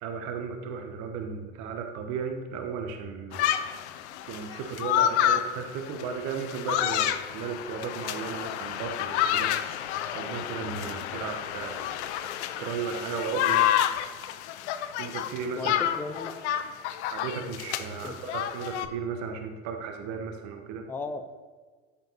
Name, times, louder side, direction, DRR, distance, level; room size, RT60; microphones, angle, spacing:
voice 1, 0.0-3.5 4.3-9.5 10.1-11.9 12.6-13.7 15.0-15.8 17.1-20.8, right 6 dB, 45° right, 5 dB, 1.0 m, -35 dB
sound 1, 3.3-18.9, left 11 dB, 60° left, 0.6 m, -29 dB
voice 2, 15.6-16.3 18.0-18.1 20.9-21.4, left 3 dB, 5° left, 9 dB, 0.3 m, -35 dB
12.0 x 7.2 x 2.8 m, 1.4 s
figure-of-eight pair, 75°, 40 cm